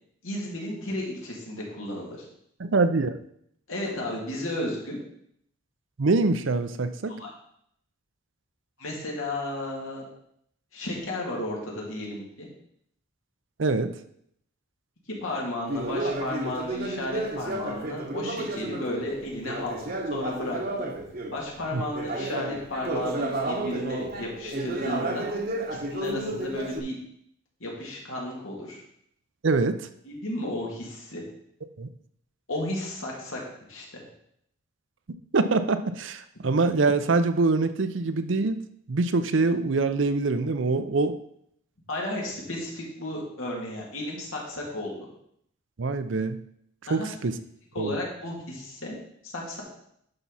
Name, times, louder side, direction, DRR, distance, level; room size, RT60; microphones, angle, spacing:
voice 1, 0.2-2.2 3.7-5.0 7.1-7.3 8.8-10.0 10.7-12.5 15.2-20.9 21.3-25.2 25.7-27.0 27.6-28.8 30.0-31.2 32.5-33.4 33.7-34.0 41.9-44.9 46.9-47.1 47.7-48.9 49.2-49.6, left 1 dB, 90° left, -2 dB, 2.7 m, -33 dB
voice 2, 2.6-3.2 6.0-7.2 13.6-14.0 21.7-21.8 29.4-29.9 31.8-31.9 35.3-38.6 38.9-41.2 45.8-46.4 46.9-47.4 47.8-48.0, right 3 dB, 65° right, 11 dB, 0.6 m, -24 dB
Conversation, 15.7-21.4 21.9-26.8, right 2 dB, 45° right, 1.1 m, -32 dB
10.5 x 5.7 x 4.2 m, 0.71 s
head